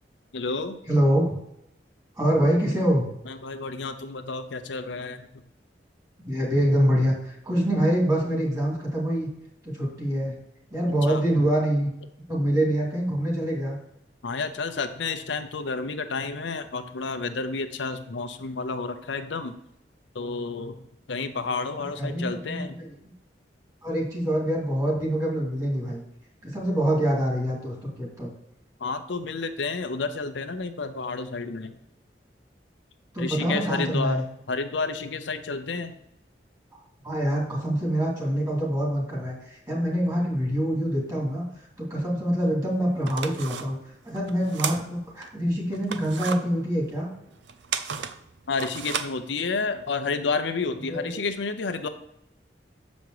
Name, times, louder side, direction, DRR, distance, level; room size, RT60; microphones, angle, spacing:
voice 1, 0.3-0.8 3.3-5.3 11.1-11.2 14.2-19.5 20.1-20.8 21.1-22.8 28.8-31.8 33.2-36.0 48.5-51.9, left 4 dB, 90° left, 8 dB, 0.7 m, -30 dB
voice 2, 0.9-1.3 2.2-3.1 6.2-9.3 9.6-10.4 10.7-11.9 12.3-13.8 22.0-23.1 23.8-26.0 26.4-28.3 33.1-34.2 37.0-43.8 44.0-47.1 50.9-51.1, right 1 dB, 20° right, -2 dB, 2.5 m, -25 dB
sound 1, 42.4-42.5 42.9-45.3 45.7-49.8, right 7 dB, 85° right, 0.6 m, -34 dB
7.2 x 5.2 x 4.7 m, 0.81 s
head